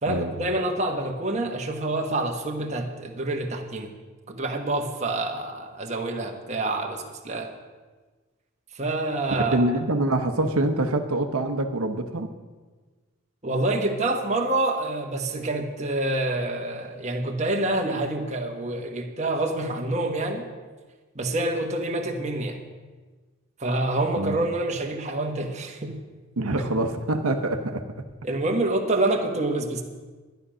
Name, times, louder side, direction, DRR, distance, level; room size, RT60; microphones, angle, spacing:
voice 1, 0.0-3.9 4.3-7.5 8.7-9.6 13.4-20.5 21.1-22.6 23.6-26.0 26.6-26.7 28.2-29.8, right 2 dB, 30° right, 2 dB, 1.3 m, -27 dB
voice 2, 9.5-12.3 24.1-24.5 26.4-27.8, right 2 dB, 85° right, 6 dB, 1.0 m, -25 dB
12.5 x 10.5 x 6.3 m, 1.3 s
head